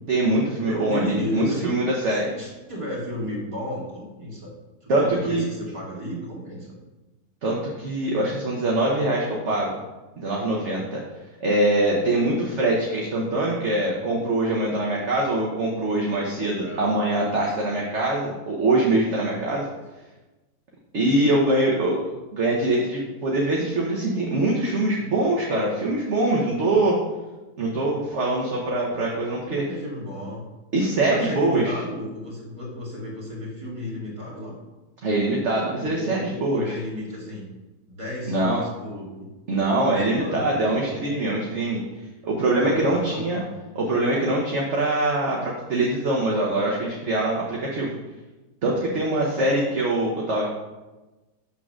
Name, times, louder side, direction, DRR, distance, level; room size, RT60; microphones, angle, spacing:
voice 1, 0.1-2.3 4.9-5.4 7.4-9.8 10.2-11.0 11.4-19.7 20.9-27.0 27.6-29.6 30.7-31.8 35.0-36.8 38.3-38.6 39.5-41.8 42.2-43.4 43.7-47.9 48.6-50.5, right 2 dB, 50° right, -3 dB, 1.2 m, -23 dB
voice 2, 0.7-1.7 2.1-4.5 4.8-6.7 16.6-16.8 19.7-19.8 29.5-30.4 31.1-34.6 35.8-37.5 37.9-39.8 40.1-40.9 42.6-43.5, equal, 20° right, -6 dB, 2.2 m, -33 dB
7.1 x 3.7 x 6.2 m, 1.1 s
omnidirectional pair, 1.7 m